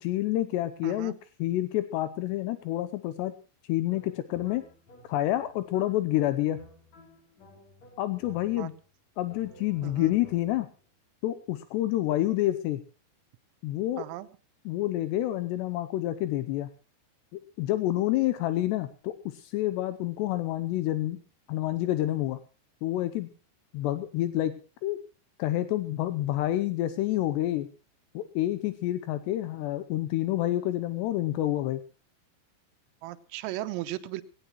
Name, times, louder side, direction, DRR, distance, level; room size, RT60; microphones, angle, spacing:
voice 1, 0.0-3.3 3.7-4.6 5.0-6.6 8.0-8.7 9.2-10.7 11.2-12.8 13.6-14.1 14.7-16.7 17.6-21.2 21.5-22.4 22.8-23.3 23.7-25.0 25.4-27.7 28.1-31.8, left 14 dB, 80° left, 11 dB, 2.5 m, -28 dB
voice 2, 0.8-1.2 8.6-8.7 9.8-10.1 14.0-14.3 33.0-34.2, right 15 dB, 90° right, 11 dB, 3.6 m, -36 dB
sound 1, 3.9-8.9 9.3-10.8, left 2 dB, 35° left, 4.0 m, -53 dB
19.5 x 17.5 x 3.1 m, 0.35 s
omnidirectional pair, 5.9 m